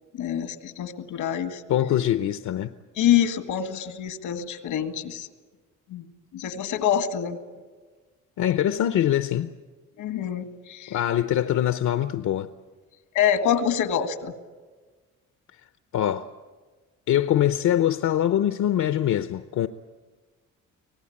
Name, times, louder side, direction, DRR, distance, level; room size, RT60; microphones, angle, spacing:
voice 1, 0.1-1.6 3.0-5.3 5.9-6.1 6.3-7.4 10.0-11.0 13.2-14.3, left 9 dB, 90° left, 1.9 m, -26 dB
voice 2, 1.7-2.7 8.4-9.5 10.9-12.5 15.9-16.3 17.1-19.7, left 11 dB, 70° left, 0.8 m, -23 dB
25.0 x 18.5 x 8.6 m
cardioid pair, 85°, 30 cm